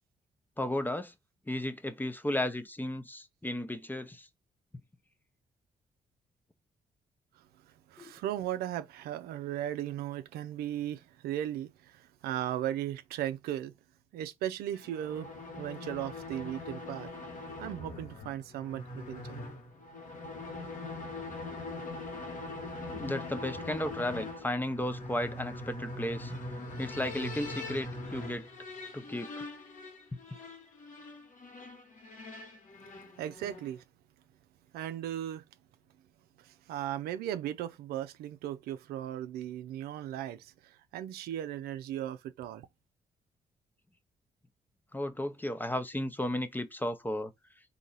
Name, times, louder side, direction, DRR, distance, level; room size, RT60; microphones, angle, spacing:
voice 1, 0.6-1.1 1.5-4.3 8.0-8.2 22.9-26.3 26.8-28.5 28.9-29.4 30.1-30.2 44.9-47.3, left 1 dB, 10° left, 0.8 m, -34 dB
voice 2, 7.4-13.7 14.1-17.1 17.6-19.5 33.2-33.8 34.7-35.4 36.4-42.7, right 11 dB, 80° right, 0.5 m, -37 dB
sound 1, 14.7-33.8, left 2 dB, 55° left, 1.4 m, -42 dB
3.9 x 2.8 x 3.9 m
hypercardioid pair, 45°, 16 cm